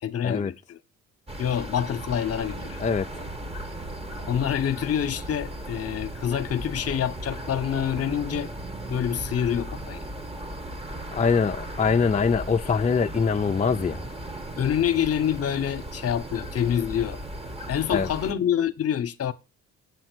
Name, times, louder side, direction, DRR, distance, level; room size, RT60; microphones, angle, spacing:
voice 1, 0.0-0.8 1.4-2.8 4.3-8.5 8.9-10.0 14.6-17.2 17.7-19.3, left 9 dB, 50° left, 1.0 m, -26 dB
sound 1, 1.3-18.3, right 1 dB, 20° right, 1.5 m, -36 dB
voice 2, 2.8-3.3 11.1-14.1 17.9-18.1, left 5 dB, 25° left, 0.6 m, -23 dB
8.3 x 7.7 x 6.2 m
cardioid pair, 90°, 30 cm